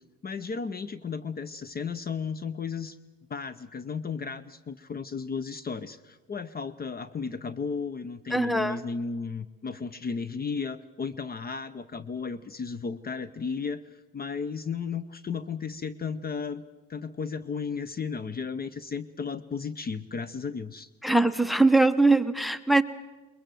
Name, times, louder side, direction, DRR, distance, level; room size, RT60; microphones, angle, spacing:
voice 1, 0.2-3.0 3.3-16.6 16.9-20.9, left 5 dB, 30° left, 16 dB, 0.7 m, -34 dB
voice 2, 8.3-8.8 21.0-22.8, right 2 dB, ahead, 16 dB, 0.9 m, -21 dB
21.5 x 21.5 x 7.7 m, 1.2 s
cardioid pair, 95°, 30 cm